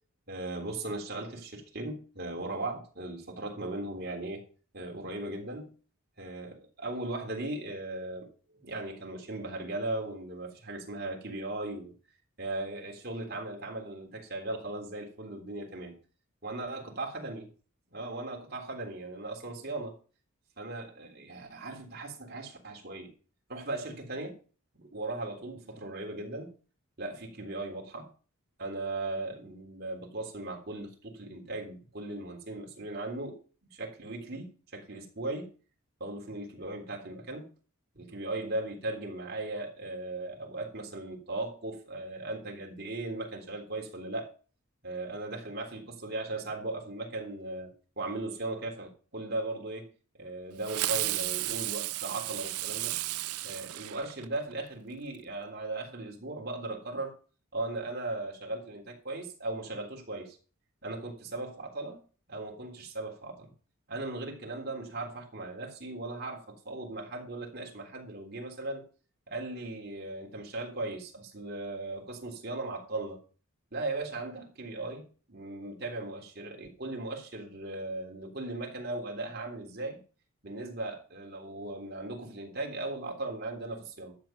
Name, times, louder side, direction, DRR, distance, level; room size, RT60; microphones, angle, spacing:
voice 1, 0.3-4.4 4.7-5.7 6.2-11.9 12.4-15.9 16.4-17.5 17.9-20.0 20.6-23.1 23.5-24.4 24.8-26.5 27.0-28.1 28.6-33.4 33.7-35.5 36.0-37.5 37.9-44.3 44.8-49.9 50.2-53.0 53.4-57.1 57.5-60.4 60.8-62.0 62.3-63.5 63.9-68.8 69.3-73.2 73.7-80.0 80.4-84.2, right 2 dB, 45° right, 3.4 m, -38 dB
Fireworks, 50.6-54.5, right 17 dB, 90° right, 0.5 m, -33 dB
12.0 x 7.3 x 5.9 m
head